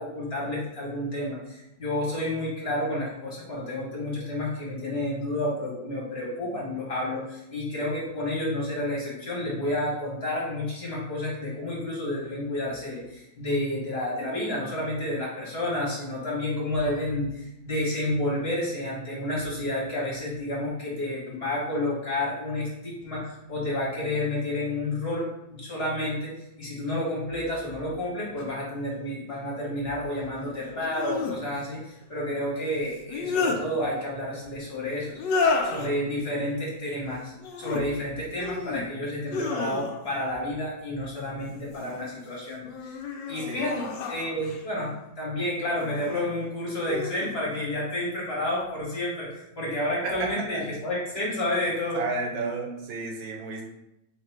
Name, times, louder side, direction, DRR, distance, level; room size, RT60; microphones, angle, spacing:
voice 1, 0.0-26.3 26.6-43.0 43.3-52.0, left 1 dB, 35° left, -5 dB, 1.3 m, -30 dB
sound 1, 28.4-28.5 30.8-31.4 32.9-33.6 35.1-35.9 37.4-37.8 38.3-38.9 39.3-40.2 41.4-42.0 42.6-44.7 45.7-46.2 46.8-47.3, left 4 dB, 75° left, 1.2 m, -31 dB
voice 2, 51.9-53.6, right 3 dB, 80° right, 1 dB, 1.6 m, -31 dB
4.0 x 2.9 x 4.4 m, 0.86 s
omnidirectional pair, 2.1 m